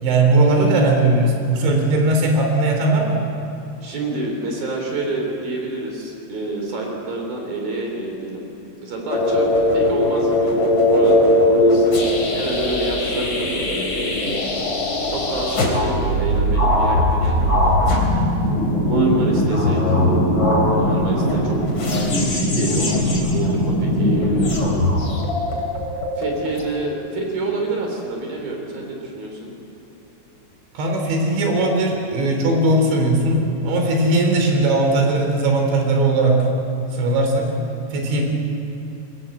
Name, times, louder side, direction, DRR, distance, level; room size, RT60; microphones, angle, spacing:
voice 1, 0.0-3.2 30.8-36.4 36.9-37.5 37.9-38.2, right 2 dB, 85° right, 2 dB, 5.8 m, -18 dB
voice 2, 3.8-8.4 8.8-10.6 10.9-12.0 12.3-14.4 15.1-17.8 18.8-20.0 20.8-21.6 22.2-24.5 26.2-29.5, right 2 dB, 55° right, 1 dB, 5.1 m, -28 dB
sound 1, 9.1-26.6, left 1 dB, 30° left, 4.0 m, -19 dB
26.5 x 22.0 x 7.8 m, 3.0 s
omnidirectional pair, 5.0 m